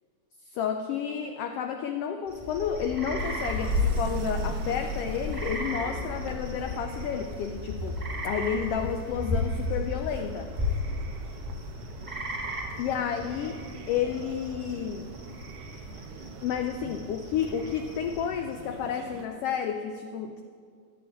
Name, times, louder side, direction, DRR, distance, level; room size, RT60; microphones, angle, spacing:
voice 1, 0.5-10.5 12.8-13.6 13.9-15.1 16.4-20.4, left 8 dB, 85° left, 6 dB, 1.3 m, -31 dB
sound 1, 2.3-18.5, left 1 dB, 20° right, 1.0 m, -34 dB
sound 2, 3.2-19.3, right 5 dB, 70° right, 1.5 m, -44 dB
12.5 x 6.3 x 9.0 m, 2.1 s
omnidirectional pair, 3.3 m